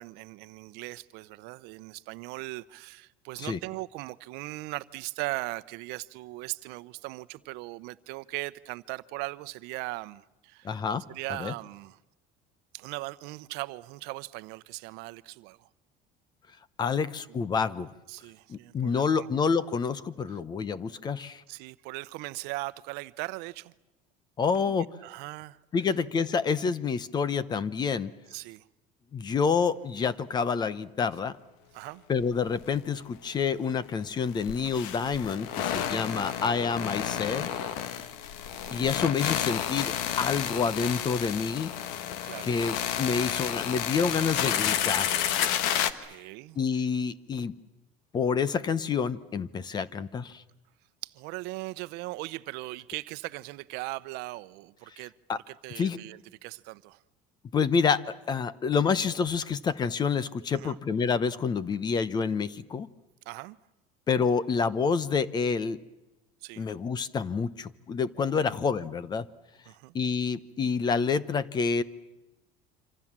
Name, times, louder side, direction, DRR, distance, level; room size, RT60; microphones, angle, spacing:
voice 1, 0.0-10.7 11.1-12.0 12.7-15.7 18.1-19.3 21.5-23.7 24.6-25.6 28.3-28.6 31.7-32.0 36.1-36.4 38.5-38.9 42.2-42.5 45.8-46.6 51.0-55.1 55.5-57.0 60.5-60.8 63.3-63.6 66.4-66.6 69.7-69.9, right 21 dB, 70° right, 0.9 m, -39 dB
voice 2, 10.6-11.0 11.4-11.5 16.8-17.9 18.5-21.4 24.4-24.9 25.7-28.1 29.1-31.4 32.1-37.5 38.7-41.7 42.4-45.3 46.6-47.5 48.1-50.4 55.3-55.4 55.8-56.0 57.5-62.9 64.1-65.8 66.6-69.3 69.9-71.8, left 5 dB, 25° left, 0.8 m, -28 dB
sound 1, 32.2-32.3 32.6-32.7 34.3-45.9, left 10 dB, 85° left, 1.5 m, -31 dB
26.5 x 26.0 x 7.4 m
cardioid pair, 160°, 17 cm